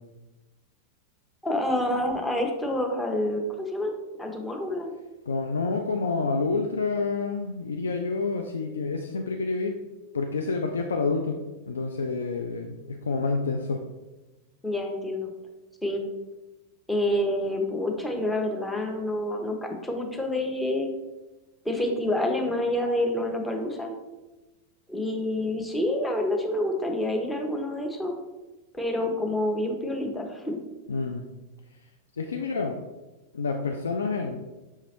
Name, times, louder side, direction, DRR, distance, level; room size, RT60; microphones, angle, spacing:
voice 1, 1.4-4.9 14.6-15.3 15.8-16.1 16.9-21.0 21.6-23.9 24.9-28.1 28.7-30.6, left 1 dB, 10° left, 2 dB, 0.7 m, -28 dB
voice 2, 5.3-9.8 10.1-13.8 30.9-31.2 32.2-32.8 33.3-34.4, left 4 dB, 70° left, 3 dB, 0.3 m, -28 dB
5.7 x 2.9 x 2.8 m, 1.1 s
figure-of-eight pair, 90°, 0 cm